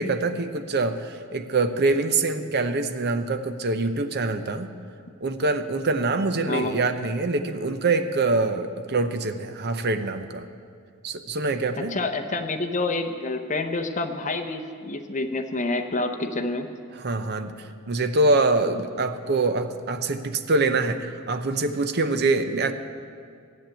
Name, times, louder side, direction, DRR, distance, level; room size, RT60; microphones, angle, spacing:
voice 1, 0.0-4.7 5.2-10.4 11.0-12.0 17.0-17.5 17.9-22.7, right 3 dB, 45° right, 9 dB, 0.7 m, -24 dB
voice 2, 6.4-6.8 11.8-16.7, left 2 dB, 35° left, 5 dB, 0.8 m, -28 dB
13.0 x 7.3 x 9.0 m, 2.2 s
head